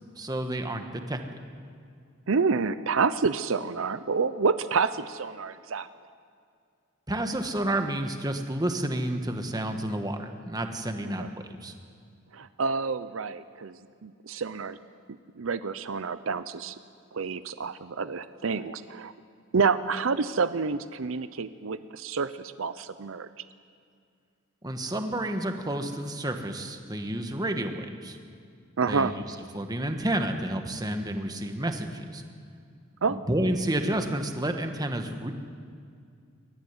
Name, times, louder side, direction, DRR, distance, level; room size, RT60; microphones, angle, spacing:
voice 1, 0.2-1.2 7.1-11.2 11.6-11.7 24.6-28.2 28.8-29.1 29.5-32.2 33.1-35.3, right 1 dB, 20° right, 6 dB, 1.4 m, -30 dB
voice 2, 2.3-5.9 11.2-11.3 12.3-13.7 14.0-14.8 15.4-16.8 17.1-19.1 19.5-23.3 28.8-29.1 33.0-33.2, right 5 dB, 75° right, 13 dB, 0.6 m, -28 dB
22.0 x 13.0 x 9.7 m, 2.3 s
head